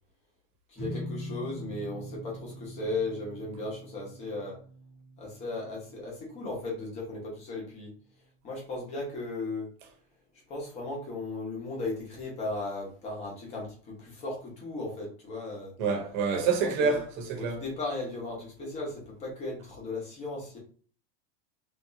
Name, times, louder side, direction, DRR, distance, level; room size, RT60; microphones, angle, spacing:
voice 1, 0.7-4.6 5.2-7.9 8.4-9.7 10.5-15.7 16.6-17.0 17.4-20.6, left 2 dB, 20° left, 1.1 m, -36 dB
sound 1, 0.7-7.2, equal, 5° right, 1.0 m, -43 dB
voice 2, 15.8-17.6, right 5 dB, 50° right, 1.0 m, -27 dB
3.4 x 2.8 x 2.7 m
supercardioid pair, 175°, 30 cm